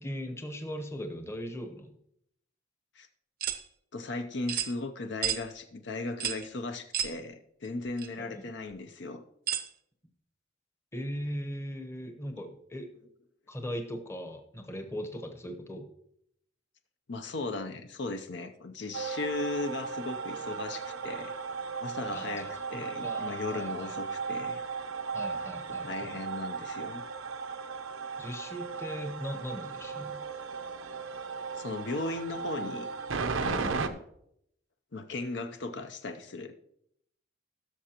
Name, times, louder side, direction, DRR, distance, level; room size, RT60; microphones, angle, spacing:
voice 1, 0.0-1.9 8.3-8.5 10.9-12.9 13.5-15.9 22.1-24.0 25.1-26.2 28.2-30.2 33.5-33.9, equal, 15° left, 5 dB, 0.9 m, -39 dB
sound 1, 3.4-3.6 4.5-4.7 5.2-5.4 6.2-6.4 6.9-7.1 8.0-8.1 9.5-9.7, right 10 dB, 50° right, 0.6 m, -31 dB
voice 2, 3.9-9.2 17.1-21.3 21.8-24.6 25.8-27.0 31.6-32.9 33.4-34.0 34.9-36.5, left 3 dB, 60° left, 7 dB, 0.6 m, -37 dB
sound 2, 18.9-33.9, right 5 dB, 85° right, 0.7 m, -36 dB
16.0 x 6.5 x 2.9 m, 0.72 s
head